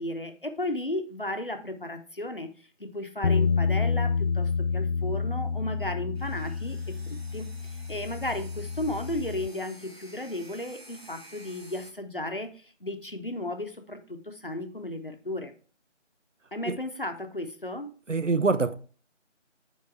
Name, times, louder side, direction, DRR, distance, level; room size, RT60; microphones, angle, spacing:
voice 1, 0.0-2.5 2.8-7.5 7.9-15.5 16.5-17.9, left 1 dB, 45° left, 1.1 m, -34 dB
Bass guitar, 3.2-9.5, left 5 dB, 65° left, 0.5 m, -28 dB
sound 1, 6.1-11.9, right 1 dB, 55° right, 1.9 m, -51 dB
voice 2, 18.1-18.7, right 4 dB, 75° right, 1.0 m, -24 dB
7.9 x 5.1 x 4.6 m
figure-of-eight pair, 175°, 38 cm